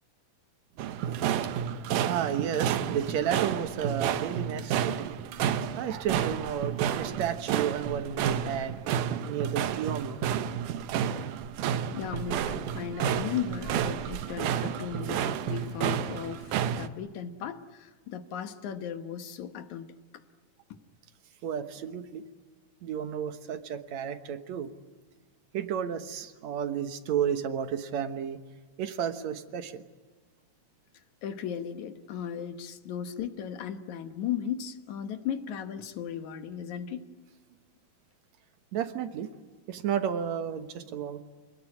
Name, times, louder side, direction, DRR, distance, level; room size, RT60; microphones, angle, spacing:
sound 1, 0.8-16.9, right 9 dB, 90° right, 2.5 m, -31 dB
voice 1, 1.0-5.2 5.8-8.8 9.3-10.2 21.4-22.2 22.8-24.7 25.5-28.4 28.8-29.8 38.7-39.3 39.7-41.2, right 8 dB, 65° right, 9 dB, 2.4 m, -32 dB
voice 2, 11.9-19.9 31.2-37.0, left 8 dB, 75° left, 8 dB, 2.5 m, -36 dB
27.5 x 19.5 x 9.8 m, 1.4 s
omnidirectional pair, 3.5 m